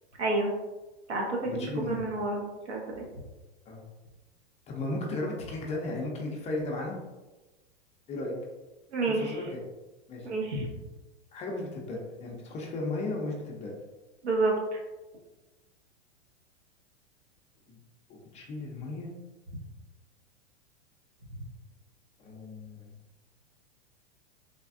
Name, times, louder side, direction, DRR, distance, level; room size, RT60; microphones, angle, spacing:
voice 1, 0.2-0.5 1.1-2.4 2.7-3.0 8.9-9.3 10.2-10.7 14.2-14.8, right 2 dB, 85° right, -1 dB, 1.0 m, -29 dB
voice 2, 1.4-2.0 3.7-3.8 4.7-7.0 8.1-8.3 9.1-9.6 10.1-10.3 11.3-13.7 17.7-17.8 18.1-19.1 22.2-22.9, left 2 dB, 20° left, -1 dB, 0.4 m, -35 dB
3.4 x 2.2 x 2.5 m, 1.1 s
hypercardioid pair, 115°, 33 cm